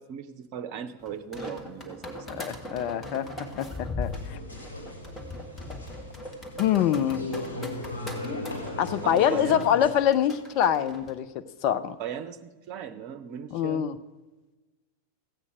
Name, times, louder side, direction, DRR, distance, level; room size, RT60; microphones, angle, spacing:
voice 1, 0.0-2.4 9.0-9.8 12.0-13.9, right 8 dB, 45° right, 9 dB, 0.8 m, -38 dB
sound 1, 1.1-11.1, left 2 dB, 15° left, 1.7 m, -39 dB
voice 2, 2.3-4.4 6.6-7.2 8.8-12.0 13.5-14.0, left 9 dB, 45° left, 10 dB, 0.6 m, -25 dB
sound 2, 4.1-9.9, left 2 dB, 75° left, 2.3 m, -38 dB
15.0 x 8.4 x 5.0 m, 1.2 s
figure-of-eight pair, 90°, 0 cm